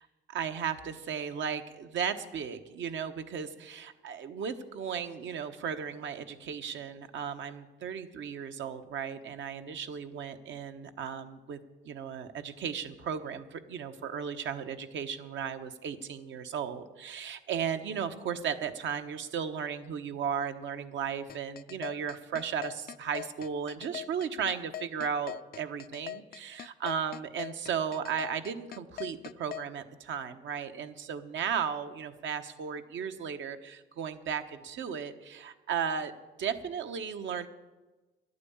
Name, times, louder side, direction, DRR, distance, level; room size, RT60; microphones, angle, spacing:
voice 1, 0.0-11.6 11.8-36.1 36.4-37.5, right 7 dB, 70° right, 8 dB, 1.1 m, -35 dB
sound 1, 21.3-29.7, left 11 dB, 50° left, 0.4 m, -41 dB
11.5 x 9.4 x 8.6 m, 1.2 s
cardioid pair, 90°, 20 cm